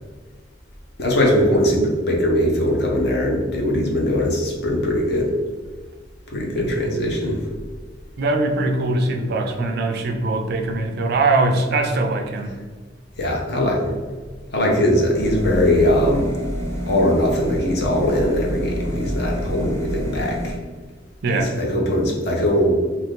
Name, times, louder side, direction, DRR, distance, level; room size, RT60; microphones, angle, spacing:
voice 1, 1.0-5.3 6.3-7.4 13.2-13.9 14.5-16.3 16.9-20.6 21.3-22.7, left 1 dB, 60° left, -1 dB, 0.7 m, -20 dB
voice 2, 8.2-12.5 21.2-21.5, right 2 dB, 55° right, 4 dB, 0.4 m, -21 dB
sound 1, 15.2-20.5, equal, 15° left, 0.5 m, -28 dB
2.5 x 2.4 x 3.5 m, 1.4 s
head